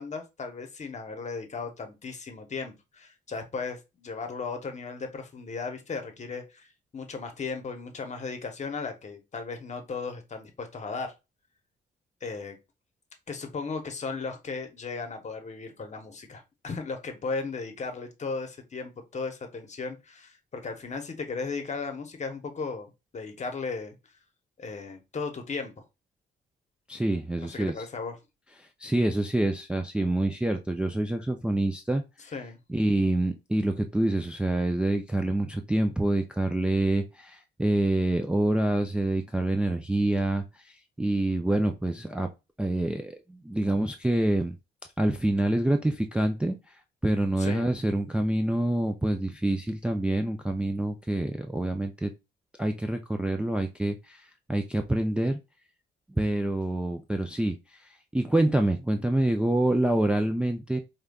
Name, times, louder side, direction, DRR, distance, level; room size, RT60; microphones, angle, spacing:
voice 1, 0.0-6.7 6.9-11.1 12.2-12.6 13.3-23.9 24.6-25.8 27.4-28.2 32.3-32.6 47.4-47.6, left 4 dB, 35° left, 0.9 m, -36 dB
voice 2, 26.9-27.7 28.6-32.0 32.7-42.3 42.6-44.6 45.0-46.8 47.0-52.1 52.6-55.4 56.1-60.8, right 1 dB, 5° right, 0.3 m, -26 dB
4.9 x 2.2 x 2.3 m
cardioid pair, 90°, 20 cm